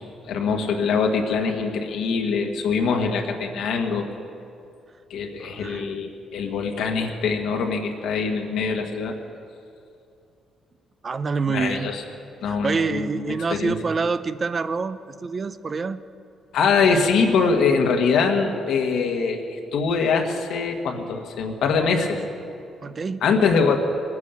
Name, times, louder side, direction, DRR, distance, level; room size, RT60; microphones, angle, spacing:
voice 1, 0.2-4.1 5.1-9.1 11.5-12.0 12.4-13.8 16.5-22.2 23.2-23.8, left 5 dB, 80° left, 3 dB, 1.6 m, -23 dB
voice 2, 5.4-6.0 11.0-12.0 12.4-16.0 22.8-23.3, right 4 dB, 40° right, 12 dB, 0.6 m, -27 dB
19.5 x 9.6 x 7.0 m, 2.6 s
cardioid pair, 90°, 0 cm